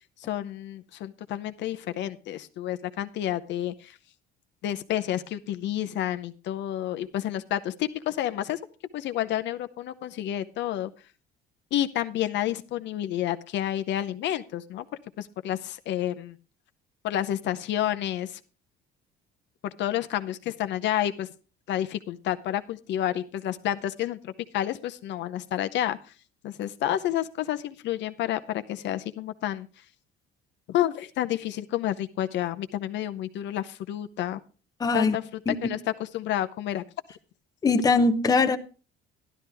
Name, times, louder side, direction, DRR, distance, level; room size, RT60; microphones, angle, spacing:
voice 1, 0.3-4.0 4.6-8.6 8.9-10.9 11.7-14.8 15.2-16.4 17.0-18.4 19.6-21.3 21.7-26.0 26.4-29.7 30.7-34.4 34.9-35.2 35.6-36.8, left 12 dB, 60° left, 0.7 m, -30 dB
voice 2, 34.8-35.1 35.5-35.6 37.6-38.6, left 3 dB, 20° left, 0.7 m, -21 dB
12.0 x 11.0 x 3.4 m
cardioid pair, 135°, 21 cm